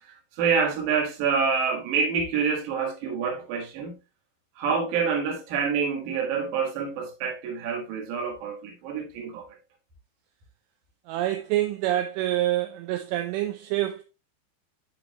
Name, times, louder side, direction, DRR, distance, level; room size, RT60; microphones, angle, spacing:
voice 1, 0.0-4.0 4.6-9.5, right 6 dB, 60° right, 2.4 m, -27 dB
voice 2, 11.1-14.0, right 14 dB, 85° right, 2.6 m, -26 dB
11.5 x 4.7 x 2.3 m
omnidirectional pair, 5.4 m